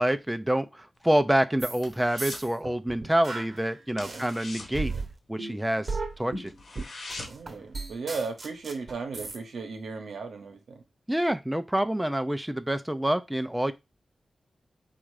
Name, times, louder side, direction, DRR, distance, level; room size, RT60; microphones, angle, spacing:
voice 1, 0.0-4.9 5.3-6.5 11.1-13.7, right 1 dB, 10° right, 0.5 m, -27 dB
sound 1, 1.0-2.6 2.8-3.1 3.4-3.5 3.9-5.8 6.1-6.2 6.5-7.6 7.9-8.0, left 2 dB, 85° left, 1.2 m, -42 dB
sound 2, 1.6-1.9 2.2-4.4 4.7-9.4, right 3 dB, 55° right, 0.9 m, -36 dB
voice 2, 7.3-10.8, right 4 dB, 90° right, 0.9 m, -36 dB
4.2 x 2.5 x 4.8 m
cardioid pair, 55°, 0 cm